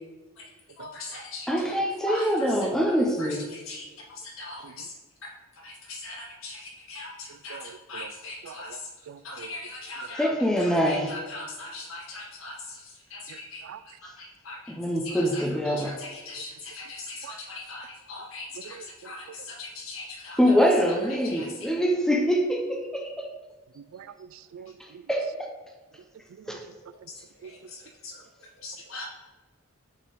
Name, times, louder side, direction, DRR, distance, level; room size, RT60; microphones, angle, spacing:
voice 1, 0.8-1.6 2.1-2.7 3.2-4.9 5.6-8.9 9.2-10.3 10.6-13.7 14.0-14.7 15.0-20.4 21.2-21.7 27.4-28.2 28.6-29.1, left 2 dB, 85° left, -2 dB, 1.4 m, -40 dB
voice 2, 1.5-3.5 10.2-11.2 14.7-16.0 20.4-23.3 25.1-25.5 26.5-26.6, equal, 5° left, 1 dB, 0.5 m, -24 dB
voice 3, 7.5-8.1 8.4-8.8 9.1-9.5 13.3-13.4 13.6-13.8 17.2-17.3 18.6-19.1 23.8-25.1 26.4-26.6 27.4-27.5, right 7 dB, 80° right, 14 dB, 0.3 m, -45 dB
6.2 x 3.7 x 4.1 m, 1.3 s
head